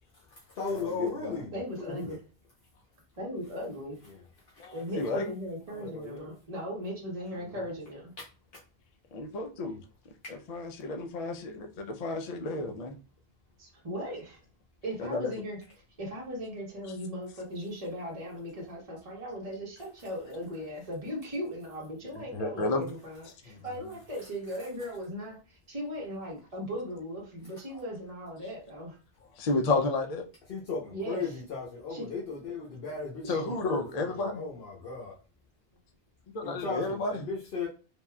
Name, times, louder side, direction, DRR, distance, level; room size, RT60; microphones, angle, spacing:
voice 1, 0.1-1.5 1.9-2.0 4.0-4.2 4.5-4.8 5.7-6.4 7.3-7.7 23.4-23.9 30.5-35.1 36.4-37.7, left 4 dB, 70° left, 0.9 m, -37 dB
voice 2, 1.5-2.2 3.2-4.0 4.7-8.1 13.6-14.4 14.8-15.6 16.0-29.0 30.9-31.2 31.9-32.0 33.2-33.4, equal, 35° right, 0.9 m, -38 dB
voice 3, 4.6-5.3 9.1-9.8 10.5-12.9 15.0-15.3 22.1-22.8 29.4-30.2 33.3-34.4 36.3-37.1, left 3 dB, 50° left, 0.5 m, -31 dB
3.4 x 2.4 x 2.2 m
omnidirectional pair, 1.0 m